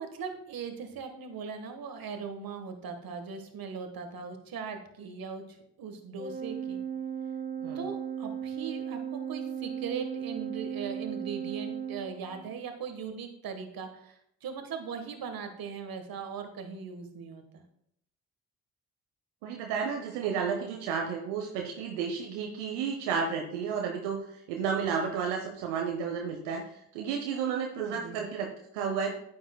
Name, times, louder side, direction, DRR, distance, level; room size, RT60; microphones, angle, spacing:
voice 1, 0.0-6.8 7.7-17.6 27.8-28.2, right 6 dB, 60° right, 7 dB, 1.5 m, -39 dB
Organ, 6.2-12.7, right 8 dB, 20° right, 1.0 m, -36 dB
voice 2, 19.4-29.1, right 6 dB, 80° right, 2 dB, 0.9 m, -32 dB
9.2 x 8.5 x 2.3 m, 0.73 s
hypercardioid pair, 45°, 41 cm